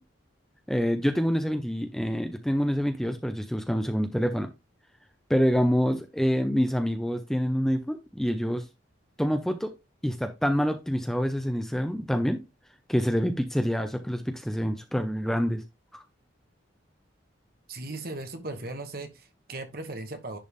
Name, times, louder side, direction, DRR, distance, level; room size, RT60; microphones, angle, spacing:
voice 1, 0.7-4.5 5.3-8.6 9.2-9.7 10.0-12.4 12.9-15.6 15.9-16.0, equal, ahead, 0.6 m, -26 dB
voice 2, 17.7-20.4, right 2 dB, 50° right, 1.2 m, -37 dB
10.5 x 3.5 x 3.5 m
head